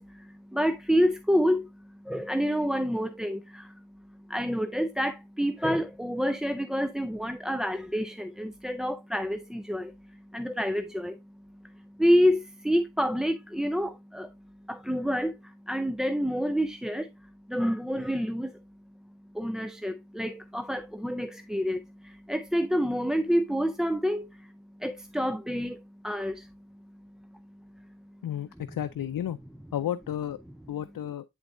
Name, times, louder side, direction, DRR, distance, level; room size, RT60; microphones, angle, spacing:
voice 1, 0.0-18.6 19.3-28.2, equal, ahead, 0.4 m, -29 dB
voice 2, 28.2-29.4 29.7-30.4 30.7-31.2, left 10 dB, 90° left, 0.5 m, -32 dB
10.0 x 4.0 x 2.5 m
wide cardioid pair, 70°, 33 cm